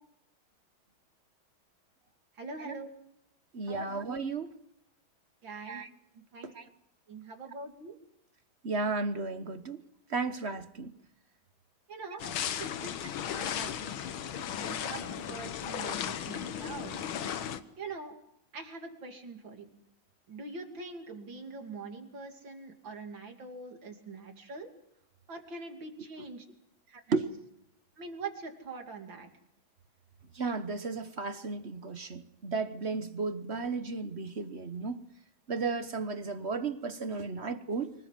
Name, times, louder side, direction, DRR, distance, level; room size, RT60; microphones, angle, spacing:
voice 1, 2.4-2.9 3.6-3.9 5.4-5.8 6.1-6.5 7.1-8.0 11.9-12.3 12.6-13.7 14.3-17.0 17.8-18.1 18.5-19.7 20.3-24.7 25.3-26.5 26.9-27.2 28.0-29.3, right 3 dB, 65° right, 4 dB, 3.6 m, -43 dB
voice 2, 3.5-4.5 5.6-5.9 6.4-6.7 8.6-9.8 10.1-10.9 12.2-12.3 26.2-26.3 27.1-27.3 30.3-35.0 35.5-37.9, right 4 dB, 40° right, 10 dB, 1.2 m, -34 dB
sound 1, 12.2-17.6, left 9 dB, 80° left, 1.9 m, -36 dB
25.5 x 18.5 x 7.6 m, 0.80 s
omnidirectional pair, 2.2 m